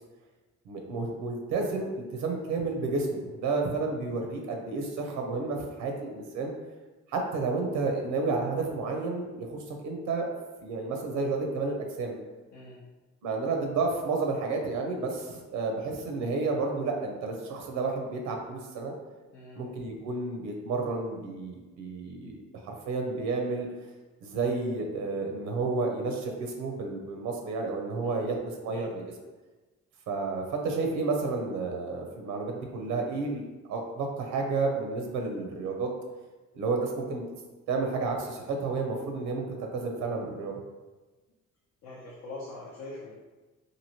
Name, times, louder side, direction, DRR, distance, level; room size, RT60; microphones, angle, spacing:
voice 1, 0.7-6.5 7.1-10.3 10.6-12.2 13.2-18.9 19.6-22.4 22.6-23.7 24.2-29.0 30.1-35.9 36.5-37.3 37.7-40.6, right 3 dB, 90° right, 2 dB, 0.6 m, -31 dB
voice 2, 41.8-43.1, left 2 dB, 85° left, -6 dB, 0.7 m, -43 dB
2.9 x 2.5 x 2.8 m, 1.2 s
cardioid pair, 90°, 30 cm